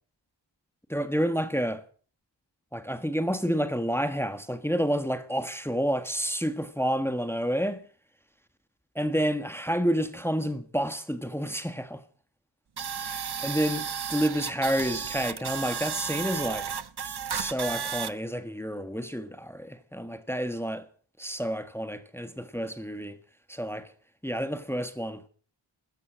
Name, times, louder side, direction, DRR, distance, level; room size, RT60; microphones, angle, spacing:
voice 1, 0.9-1.8 2.7-7.8 8.9-12.0 13.0-16.7 17.3-20.9 21.2-23.1 23.5-23.9 24.2-25.2, equal, 5° left, 1.5 m, -29 dB
sound 1, 12.8-18.1, right 7 dB, 55° right, 0.9 m, -33 dB
15.0 x 13.5 x 6.3 m
wide cardioid pair, 65°, 47 cm